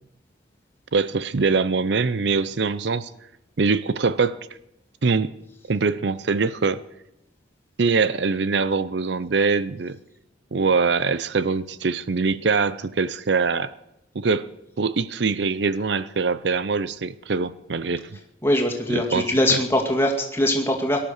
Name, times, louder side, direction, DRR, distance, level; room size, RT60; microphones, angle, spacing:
voice 1, 0.9-3.1 3.6-4.4 5.0-5.3 5.7-6.8 7.8-10.0 10.5-13.7 14.1-14.5 14.8-18.2 18.9-19.6, right 4 dB, 70° right, 16 dB, 0.6 m, -23 dB
voice 2, 18.4-21.0, left 1 dB, 15° left, 2 dB, 2.2 m, -22 dB
18.5 x 12.0 x 6.5 m, 0.88 s
head